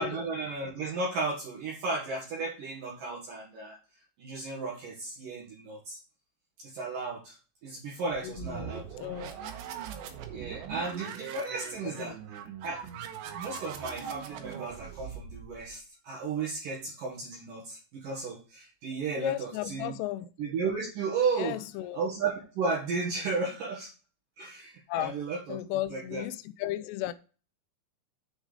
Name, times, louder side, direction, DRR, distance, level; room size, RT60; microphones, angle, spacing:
voice 1, 0.0-3.8 4.2-6.0 6.6-7.3 7.6-8.9 10.3-12.2 12.6-12.8 13.3-19.9 20.4-21.6 21.9-23.9 24.4-25.6 25.9-26.3, right 4 dB, 60° right, 2.8 m, -34 dB
sound 1, 8.1-15.8, right 8 dB, 80° right, 3.3 m, -41 dB
voice 2, 8.2-9.4 11.8-12.1 19.2-20.3 21.4-22.0 24.9-25.1 25.5-27.1, left 14 dB, 80° left, 2.6 m, -35 dB
7.9 x 6.3 x 4.9 m
omnidirectional pair, 5.1 m